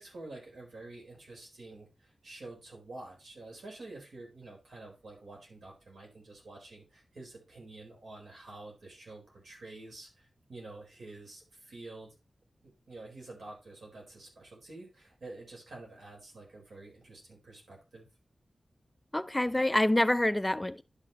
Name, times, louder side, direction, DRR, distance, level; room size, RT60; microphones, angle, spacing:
voice 1, 0.0-12.2 12.6-18.1, right 2 dB, 80° right, 4.2 m, -48 dB
voice 2, 19.1-20.8, left 1 dB, 15° left, 0.4 m, -26 dB
11.0 x 6.3 x 3.0 m
wide cardioid pair, 75°, 0 cm